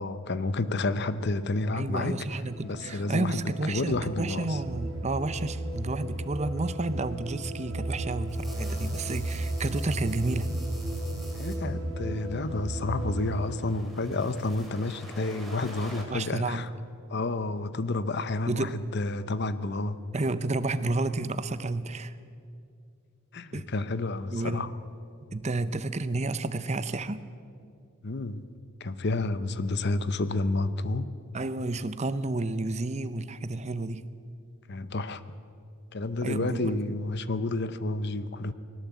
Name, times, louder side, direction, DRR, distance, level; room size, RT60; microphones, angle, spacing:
voice 1, 0.0-2.2 2.6-3.4 3.7-4.6 11.3-16.7 17.1-20.0 23.3-24.7 28.0-28.4 28.8-31.1 34.7-35.2 35.9-38.5, left 2 dB, 50° left, 14 dB, 0.8 m, -30 dB
voice 2, 1.7-10.5 14.1-14.2 16.1-16.7 18.5-18.7 20.1-22.2 23.5-23.7 24.3-24.6 25.3-27.2 31.3-34.1 36.2-36.9, right 2 dB, 30° right, 13 dB, 0.7 m, -31 dB
sound 1, 2.5-13.4, right 1 dB, 65° right, 4.5 m, -34 dB
sound 2, 8.3-11.6 12.7-16.0, right 1 dB, ahead, 3.2 m, -47 dB
20.5 x 18.0 x 8.2 m, 2.4 s
head